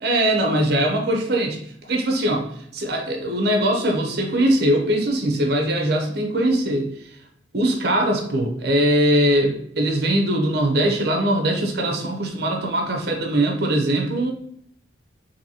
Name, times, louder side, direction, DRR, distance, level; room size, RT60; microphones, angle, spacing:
voice 1, 0.0-1.6 1.9-2.5 2.7-6.9 7.5-14.3, right 1 dB, 55° right, 2 dB, 0.8 m, -21 dB
4.5 x 2.7 x 2.8 m, 0.67 s
head